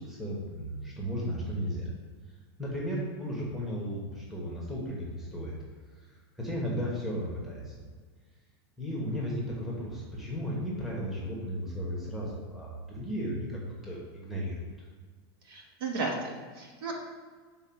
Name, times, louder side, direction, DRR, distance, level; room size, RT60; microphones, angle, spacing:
voice 1, 0.0-1.9 2.6-5.6 6.4-7.9 8.8-14.7, equal, ahead, -5 dB, 1.1 m, -35 dB
voice 2, 15.4-16.9, right 3 dB, 60° right, 0 dB, 1.5 m, -34 dB
5.8 x 4.1 x 5.7 m, 1.5 s
supercardioid pair, 175°, 13 cm